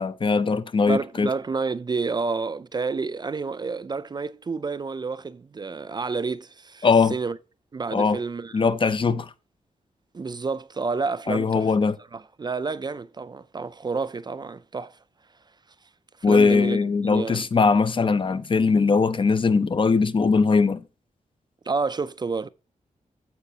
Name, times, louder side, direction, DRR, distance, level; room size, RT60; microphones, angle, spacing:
voice 1, 0.0-1.3 6.8-7.2 7.9-8.2 8.5-9.3 11.3-12.0 16.2-20.8, left 4 dB, 40° left, 0.6 m, -20 dB
voice 2, 0.9-7.4 7.7-8.5 10.1-11.7 12.1-15.0 16.2-17.5 21.7-22.5, right 4 dB, 30° right, 0.4 m, -29 dB
15.0 x 5.0 x 2.8 m
wide cardioid pair, 140°, 14 cm